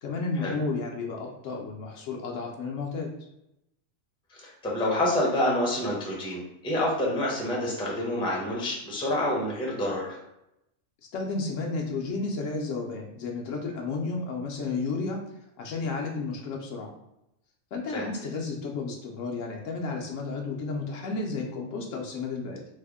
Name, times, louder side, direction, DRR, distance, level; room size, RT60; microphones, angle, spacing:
voice 1, 0.0-3.1 11.1-15.2 15.6-16.9 17.7-22.6, left 3 dB, 70° left, 0 dB, 0.9 m, -32 dB
voice 2, 4.3-10.2 17.9-18.0, left 1 dB, 5° left, -4 dB, 0.5 m, -28 dB
3.4 x 2.1 x 3.4 m, 0.85 s
omnidirectional pair, 1.4 m